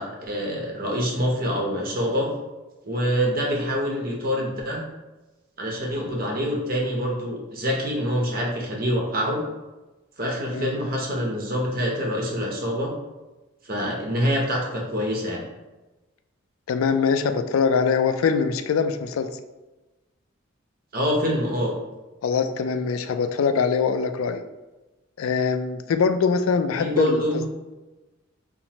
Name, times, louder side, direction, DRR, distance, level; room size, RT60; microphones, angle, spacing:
voice 1, 0.0-2.3 2.8-4.8 5.6-9.4 10.2-12.9 13.6-15.4 20.9-21.7 26.8-27.4, equal, 45° right, -1 dB, 0.8 m, -25 dB
voice 2, 16.7-19.3 22.2-24.4 25.2-27.2, left 5 dB, 80° left, 8 dB, 0.3 m, -23 dB
5.7 x 2.0 x 2.9 m, 1.1 s
head